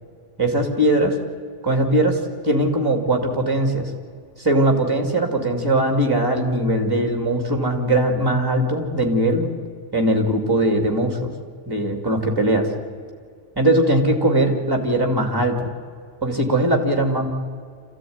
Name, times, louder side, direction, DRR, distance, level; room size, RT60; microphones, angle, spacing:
voice 1, 0.4-1.2 1.6-3.9 4.4-9.5 9.9-11.3 11.7-12.7 13.6-15.7 16.2-17.3, right 1 dB, 20° right, 4 dB, 2.8 m, -20 dB
27.0 x 15.5 x 9.6 m, 2.2 s
omnidirectional pair, 1.1 m